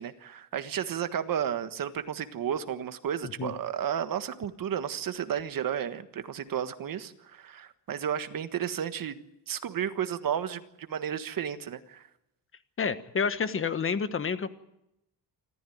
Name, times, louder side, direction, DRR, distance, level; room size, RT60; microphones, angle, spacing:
voice 1, 0.0-9.2 9.5-12.0, right 9 dB, 55° right, 10 dB, 1.5 m, -32 dB
voice 2, 12.8-14.5, left 6 dB, 30° left, 12 dB, 1.3 m, -29 dB
26.5 x 14.0 x 9.4 m, 0.86 s
cardioid pair, 140°, 41 cm